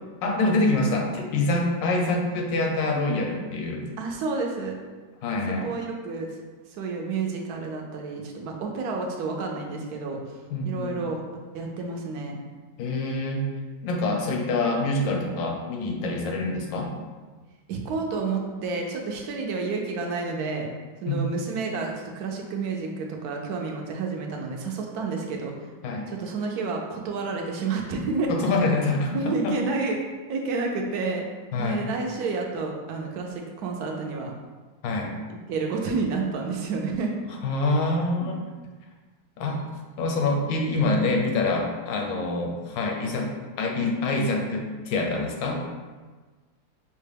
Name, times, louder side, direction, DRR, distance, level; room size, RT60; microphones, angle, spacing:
voice 1, 0.2-3.8 5.2-5.7 10.5-10.9 12.8-13.5 13.8-16.9 21.1-21.2 25.8-26.1 28.3-29.6 31.5-31.9 34.8-35.1 37.4-38.4 39.4-39.6 40.0-43.3 43.6-45.5, left 2 dB, 75° left, 1 dB, 1.3 m, -25 dB
voice 2, 4.0-4.8 5.6-6.3 6.7-10.2 10.6-11.2 11.5-12.4 17.7-20.7 21.0-25.5 26.1-28.3 29.1-30.0 30.3-31.2 31.6-34.3 35.5-37.2 45.4-45.5, right 4 dB, 75° right, 1 dB, 0.9 m, -30 dB
5.6 x 2.2 x 3.3 m, 1.4 s
omnidirectional pair, 2.1 m